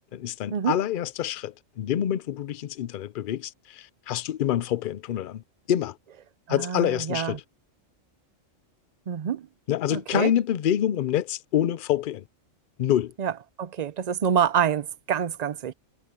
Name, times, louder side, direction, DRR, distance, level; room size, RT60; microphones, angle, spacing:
voice 1, 0.1-5.4 5.7-6.0 6.5-7.4 9.7-12.2 12.8-13.1, left 11 dB, 55° left, 0.6 m, -26 dB
voice 2, 6.5-7.4 9.1-9.5 9.9-10.3 13.2-13.3 13.6-15.7, right 8 dB, 50° right, 0.5 m, -26 dB
omnidirectional pair, 1.4 m